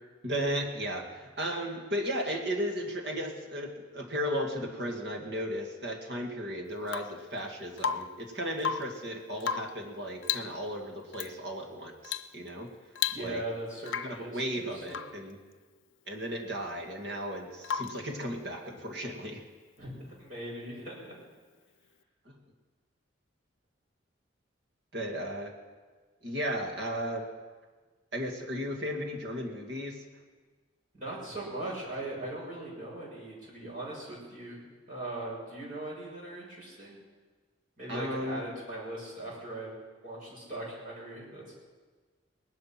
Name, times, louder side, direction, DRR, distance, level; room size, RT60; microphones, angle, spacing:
voice 1, 0.2-12.7 13.2-13.4 14.0-15.4 16.1-19.4 22.3-22.4 24.9-25.5 26.2-27.3 28.1-30.0 37.9-38.4, equal, 60° right, 2 dB, 2.2 m, -35 dB
Rain / Water tap faucet / Drip, 6.9-7.3 7.8-8.2 8.5-9.0 9.4-9.8 10.2-10.6 11.1-11.3 12.0-12.3 12.6-12.7 13.0-13.5 13.9-14.2 14.9-15.2 17.6-18.1 20.0-20.1, left 7 dB, 75° left, 0.6 m, -34 dB
voice 2, 13.1-15.1 19.8-21.1 30.9-34.6 34.9-37.0 37.8-39.7 40.0-41.5, right 1 dB, 45° right, -5 dB, 6.5 m, -40 dB
19.5 x 12.0 x 6.0 m, 1.4 s
head